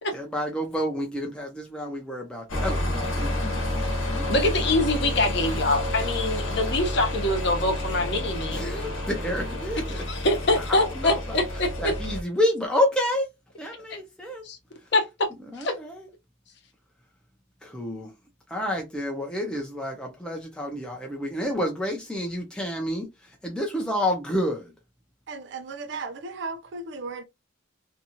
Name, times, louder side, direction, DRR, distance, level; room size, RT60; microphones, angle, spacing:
voice 1, 0.1-3.4 4.1-4.3 8.5-10.0 10.7-11.2 11.8-13.3 13.6-14.4 15.5-16.1 17.6-18.1 18.5-23.1 23.4-24.7, left 1 dB, 5° left, 0.5 m, -29 dB
sound 1, 2.5-12.2, left 1 dB, 80° left, 0.9 m, -29 dB
voice 2, 4.3-8.6 10.1-11.9 14.4-14.6 14.9-15.3 15.6-15.7, left 2 dB, 55° left, 0.8 m, -24 dB
voice 3, 25.3-27.2, right 3 dB, 60° right, 0.4 m, -35 dB
2.7 x 2.3 x 2.7 m
head